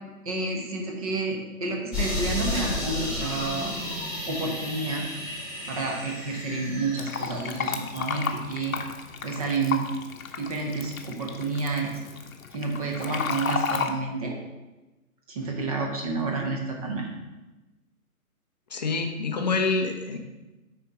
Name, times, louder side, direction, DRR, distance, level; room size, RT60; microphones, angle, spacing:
voice 1, 0.2-3.7 4.3-5.0 5.7-8.8 9.2-9.9 10.4-12.0 12.5-14.4 15.3-17.1, right 3 dB, 25° right, 1 dB, 1.0 m, -30 dB
sound 1, 1.9-8.3, left 2 dB, 5° right, 1.7 m, -33 dB
Fill (with liquid), 7.0-13.9, left 6 dB, 70° left, 1.0 m, -32 dB
voice 2, 18.7-20.2, left 3 dB, 30° left, 4 dB, 0.6 m, -26 dB
9.4 x 4.3 x 4.7 m, 1.1 s
hypercardioid pair, 160°, 44 cm